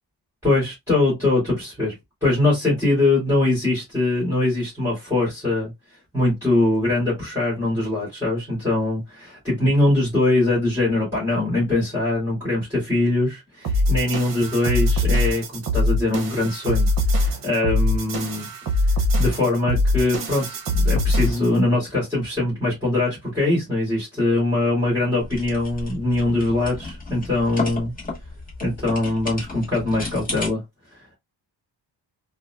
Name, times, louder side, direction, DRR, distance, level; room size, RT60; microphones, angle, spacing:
voice 1, 0.4-1.9 2.2-5.7 6.1-18.5 19.2-27.9 28.6-30.6 30.9-31.2, left 2 dB, 5° right, 2.3 m, -22 dB
sound 1, 13.6-21.6, left 1 dB, 50° right, 0.8 m, -22 dB
sound 2, 25.2-30.5, left 2 dB, 20° left, 1.0 m, -33 dB
4.0 x 2.3 x 2.3 m
wide cardioid pair, 175°, 44 cm